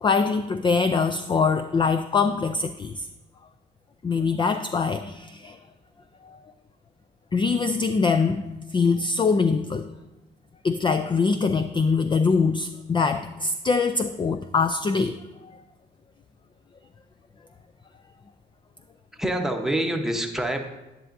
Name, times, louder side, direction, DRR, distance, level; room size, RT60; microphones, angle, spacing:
voice 1, 0.0-3.1 4.0-5.6 7.3-8.5 8.7-9.9 10.6-15.2, left 4 dB, 25° left, 9 dB, 0.4 m, -23 dB
voice 2, 19.1-20.8, right 1 dB, ahead, 3 dB, 1.0 m, -26 dB
10.0 x 9.9 x 2.6 m, 1.0 s
cardioid pair, 90°, 20 cm